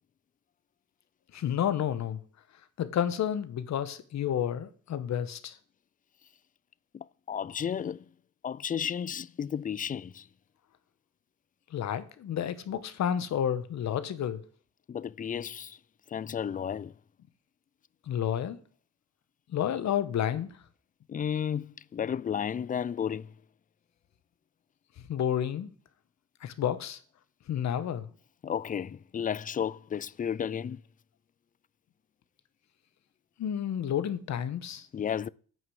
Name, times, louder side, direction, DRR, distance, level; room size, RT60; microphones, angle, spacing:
voice 1, 1.3-2.2 2.8-5.6 11.7-14.4 18.1-18.6 19.5-20.5 25.1-25.7 26.4-27.0 27.5-28.1 33.4-34.9, left 9 dB, 65° left, 1.2 m, -30 dB
voice 2, 6.9-8.1 8.4-10.3 14.9-15.8 16.1-16.9 21.1-23.3 28.4-30.8 34.9-35.3, left 8 dB, 30° left, 0.4 m, -33 dB
9.3 x 5.8 x 7.9 m
cardioid pair, 90°, 30 cm